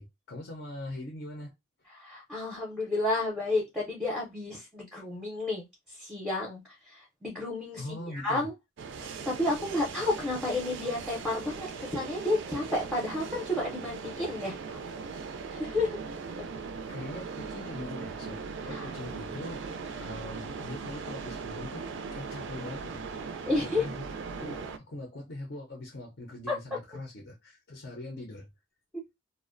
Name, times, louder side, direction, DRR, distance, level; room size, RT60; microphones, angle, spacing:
voice 1, 0.0-1.5 7.8-8.5 16.9-19.6 20.0-24.0 24.3-28.5, left 1 dB, 55° left, 0.5 m, -42 dB
voice 2, 2.0-7.9 8.1-8.5 9.0-14.8 15.5-15.9 18.7-18.9 23.5-23.9 26.5-26.6, left 2 dB, ahead, 0.5 m, -31 dB
sound 1, 8.8-24.8, right 5 dB, 55° right, 0.3 m, -39 dB
2.4 x 2.1 x 2.5 m
head